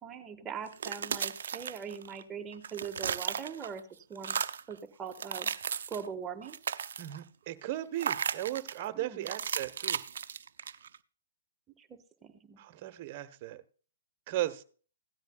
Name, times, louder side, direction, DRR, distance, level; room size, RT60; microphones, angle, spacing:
voice 1, 0.0-3.8 4.1-4.3 4.7-5.5 5.9-6.6 8.9-9.3 11.8-11.9 12.2-12.6, right 6 dB, 15° right, 6 dB, 1.5 m, -41 dB
sound 1, 0.7-2.2 2.5-3.8 4.2-4.7 5.1-6.1 6.4-7.2 8.0-8.8 9.3-11.0, right 7 dB, 65° right, 0.5 m, -35 dB
voice 2, 7.0-10.0 12.6-13.6 14.3-14.6, right 14 dB, 40° right, 10 dB, 1.1 m, -36 dB
17.0 x 13.0 x 2.4 m, 0.40 s
figure-of-eight pair, 125°, 0 cm